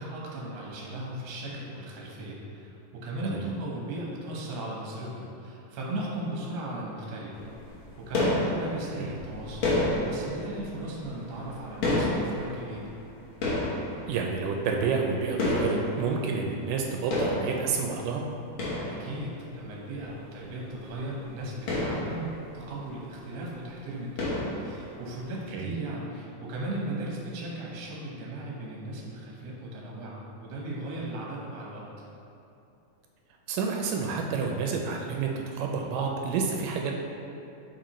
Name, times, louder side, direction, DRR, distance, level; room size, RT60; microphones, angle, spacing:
voice 1, 0.0-7.4 8.0-9.6 10.0-12.9 18.9-31.9, right 1 dB, 65° right, -3 dB, 1.8 m, -37 dB
sound 1, 7.3-16.8 17.1-19.6 20.0-20.1 20.4-20.5 20.8-21.0 21.4-23.2 23.5-23.7 24.2-25.2, left 1 dB, 65° left, 1.2 m, -31 dB
voice 2, 14.1-18.2 25.5-25.8 33.5-36.9, right 5 dB, 85° right, 1 dB, 2.1 m, -29 dB
7.4 x 4.5 x 3.0 m, 2.7 s
omnidirectional pair, 3.8 m